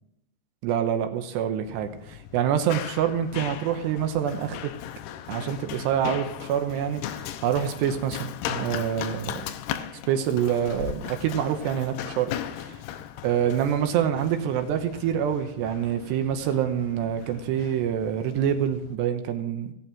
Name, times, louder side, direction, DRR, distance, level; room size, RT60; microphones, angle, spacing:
voice 1, 0.6-4.7 5.3-9.4 10.1-12.3 13.2-19.7, right 9 dB, 75° right, 6 dB, 2.9 m, -26 dB
Run, 1.7-19.0, left 11 dB, 85° left, 2.4 m, -38 dB
18.5 x 8.5 x 3.0 m, 0.84 s
omnidirectional pair, 5.2 m